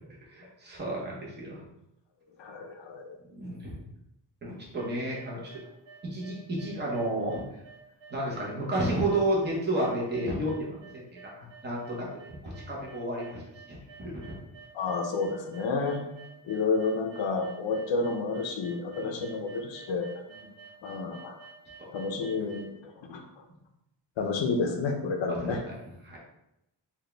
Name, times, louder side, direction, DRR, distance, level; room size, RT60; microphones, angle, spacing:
voice 1, 0.3-1.6 3.2-3.7 4.4-5.4 6.0-7.4 8.1-11.0 11.4-13.4 13.7-14.4 18.9-19.2 20.3-20.4 21.8-21.9 25.3-25.4 26.0-26.2, right 1 dB, 25° right, -4 dB, 0.8 m, -31 dB
voice 2, 2.4-3.2 4.5-4.6 14.7-16.0 16.5-20.1 20.8-21.4 21.9-23.2 24.2-25.6, left 4 dB, 85° left, 3 dB, 0.6 m, -30 dB
sound 1, 4.5-22.7, right 5 dB, 80° right, 1.2 m, -51 dB
4.0 x 2.4 x 3.3 m, 0.85 s
wide cardioid pair, 175°, 43 cm